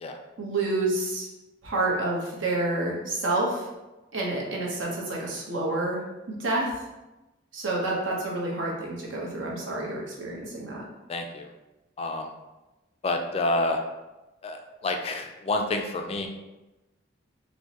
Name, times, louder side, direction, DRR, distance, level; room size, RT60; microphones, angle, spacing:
voice 1, 0.4-1.3 1.6-3.7 4.1-6.0 6.3-6.7 7.5-10.8, right 2 dB, 80° right, -3 dB, 0.9 m, -28 dB
voice 2, 11.1-11.5 12.0-12.3 13.0-13.8 14.4-16.3, left 2 dB, 30° left, 4 dB, 0.3 m, -28 dB
4.4 x 2.1 x 2.9 m, 1.0 s
head